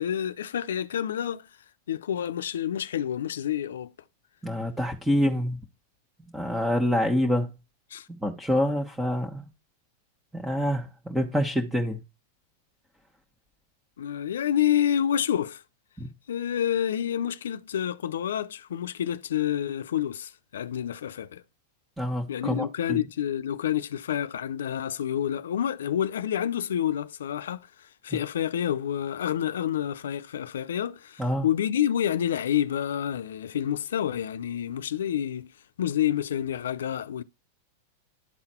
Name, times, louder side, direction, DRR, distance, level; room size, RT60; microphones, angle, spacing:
voice 1, 0.0-1.5 1.9-3.9 7.9-8.1 14.0-15.6 16.3-21.4 22.3-35.5 35.8-37.2, left 10 dB, 90° left, 0.6 m, -28 dB
voice 2, 4.4-5.6 6.3-7.5 8.2-9.5 10.3-12.0 16.0-16.1 22.0-23.0 31.2-31.5, equal, 5° right, 1.3 m, -26 dB
11.5 x 4.0 x 4.4 m
hypercardioid pair, 130°, 0 cm